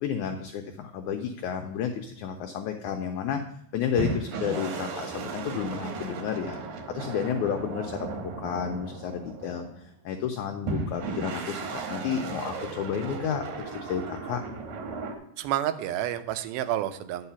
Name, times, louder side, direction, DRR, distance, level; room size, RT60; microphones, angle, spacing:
voice 1, 0.0-3.4 3.7-6.6 6.9-14.4, left 8 dB, 90° left, 4 dB, 1.7 m, -31 dB
sound 1, 4.0-9.9 10.7-15.2, right 4 dB, 65° right, 2.3 m, -35 dB
voice 2, 15.4-17.3, right 12 dB, 90° right, 10 dB, 2.5 m, -29 dB
9.8 x 4.9 x 5.6 m, 0.70 s
omnidirectional pair, 4.2 m